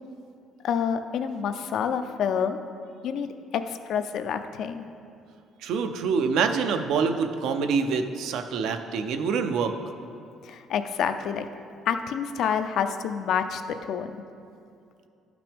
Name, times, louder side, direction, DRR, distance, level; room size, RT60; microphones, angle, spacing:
voice 1, 0.6-2.6 3.0-4.8 10.4-11.5 11.9-14.2, left 7 dB, 55° left, 9 dB, 0.4 m, -28 dB
voice 2, 5.6-9.7, right 5 dB, 70° right, 7 dB, 0.5 m, -26 dB
11.5 x 5.9 x 3.5 m, 2.5 s
cardioid pair, 165°, 0 cm